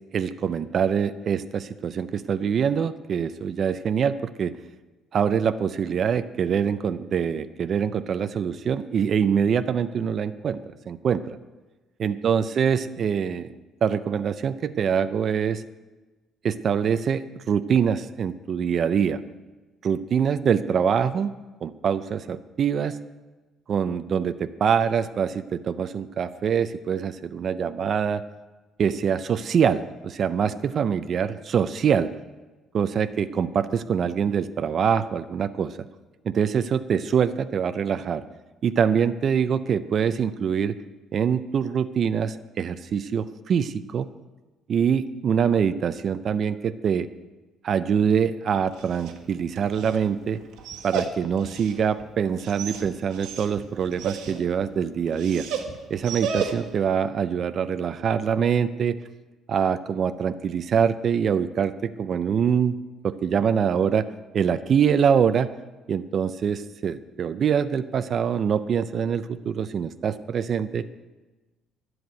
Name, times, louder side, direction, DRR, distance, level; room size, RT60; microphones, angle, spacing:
voice 1, 0.1-4.5 5.1-11.4 12.0-13.5 13.8-15.6 16.4-19.2 19.8-21.3 21.6-23.0 23.7-28.2 28.8-32.1 32.7-35.8 36.2-38.2 38.6-40.7 41.1-44.1 44.7-47.1 47.6-50.4 50.8-55.5 55.9-59.0 59.5-62.8 63.0-64.1 64.3-65.5 65.9-70.9, right 7 dB, 35° right, 11 dB, 0.4 m, -24 dB
Dog, 48.6-56.9, right 6 dB, 80° right, 1.6 m, -35 dB
11.5 x 7.8 x 9.2 m, 1.2 s
cardioid pair, 175°, 0 cm